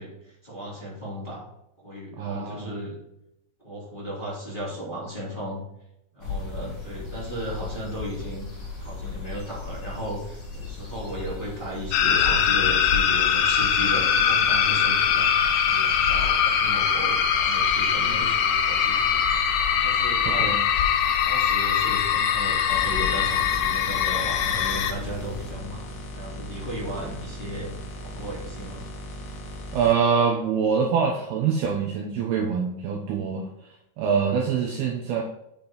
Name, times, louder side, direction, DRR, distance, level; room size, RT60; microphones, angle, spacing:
voice 1, 0.0-1.4 1.8-3.0 3.6-5.6 6.1-8.5 8.7-15.3 15.7-19.2 19.8-20.5 21.0-28.8, equal, 15° left, -7 dB, 2.8 m, -35 dB
voice 2, 2.2-2.7 20.3-20.6 29.7-33.5 34.0-35.2, right 6 dB, 75° right, 1 dB, 2.4 m, -24 dB
sound 1, 6.2-25.5, left 4 dB, 35° left, 1.9 m, -36 dB
sound 2, 11.9-24.9, left 8 dB, 80° left, 2.9 m, -22 dB
sound 3, 22.7-29.9, equal, 60° left, 1.8 m, -38 dB
8.7 x 7.1 x 3.9 m, 0.82 s
omnidirectional pair, 5.2 m